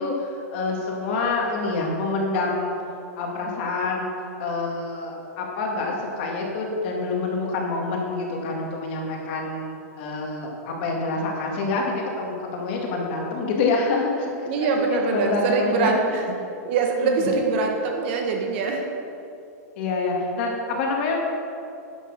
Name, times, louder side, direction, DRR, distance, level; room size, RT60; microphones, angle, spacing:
voice 1, 0.0-2.8 3.2-4.1 4.4-16.0 17.0-17.3 19.8-21.3, left 3 dB, 45° left, 0 dB, 2.0 m, -27 dB
voice 2, 14.5-16.2 16.6-18.9, right 4 dB, 45° right, 2 dB, 1.3 m, -23 dB
11.0 x 6.5 x 6.6 m, 2.6 s
supercardioid pair, 170°, 9 cm